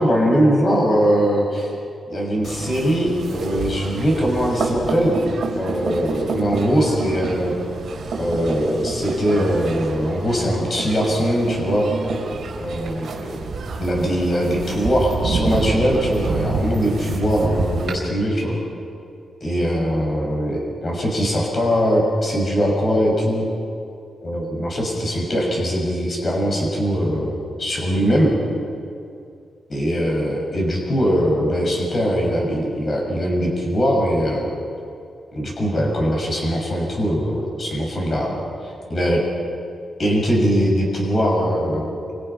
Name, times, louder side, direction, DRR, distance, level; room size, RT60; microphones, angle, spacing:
voice 1, 0.0-1.7 2.1-5.2 5.5-7.6 8.2-11.9 12.6-13.4 13.8-18.6 19.4-23.5 24.2-28.3 29.7-34.5 35.3-38.4 38.9-39.2 40.0-41.9, equal, 35° left, -1 dB, 6.7 m, -21 dB
sound 1, 2.4-17.9, right 4 dB, 55° right, 4.3 m, -28 dB
29.0 x 27.0 x 5.9 m, 2.5 s
wide cardioid pair, 170°, 0 cm